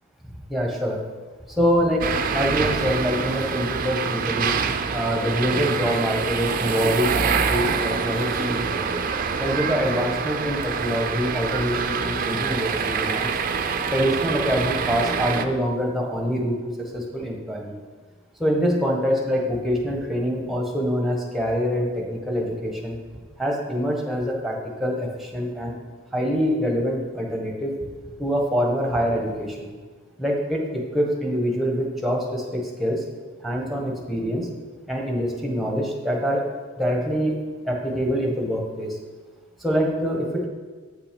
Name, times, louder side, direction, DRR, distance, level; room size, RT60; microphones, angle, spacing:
voice 1, 0.5-1.0 1.6-2.1 2.3-4.5 4.9-8.9 9.4-13.3 13.9-17.8 18.4-23.0 23.4-25.7 26.1-27.8 28.2-29.7 30.2-33.0 33.4-34.5 34.9-36.4 36.8-37.3 37.6-38.9 39.6-40.5, equal, ahead, 0 dB, 1.2 m, -25 dB
sound 1, 2.0-15.5, right 5 dB, 45° right, 0.5 m, -25 dB
7.9 x 6.0 x 5.2 m, 1.4 s
head